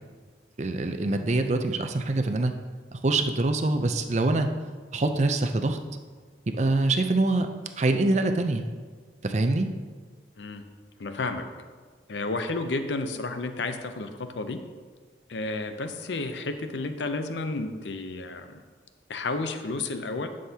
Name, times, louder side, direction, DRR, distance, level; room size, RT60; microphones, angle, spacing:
voice 1, 0.6-2.5 2.9-4.5 4.9-5.8 6.5-7.5 7.8-8.6 9.2-9.7, right 2 dB, 40° right, 6 dB, 0.5 m, -24 dB
voice 2, 11.0-11.5 12.1-14.6 15.3-18.6 19.1-20.3, left 3 dB, 75° left, 8 dB, 0.6 m, -31 dB
11.5 x 6.4 x 2.8 m, 1.5 s
head